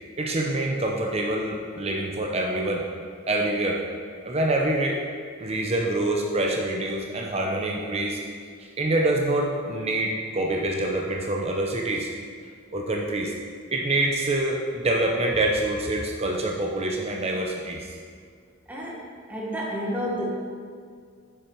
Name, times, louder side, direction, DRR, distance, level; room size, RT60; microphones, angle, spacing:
voice 1, 0.2-2.8 3.3-3.8 4.3-5.0 5.4-8.2 8.8-12.1 12.7-13.3 13.7-17.9, right 1 dB, 30° right, 0 dB, 0.7 m, -26 dB
voice 2, 18.7-20.2, equal, 5° right, -5 dB, 1.2 m, -31 dB
9.1 x 6.9 x 4.5 m, 2.1 s
head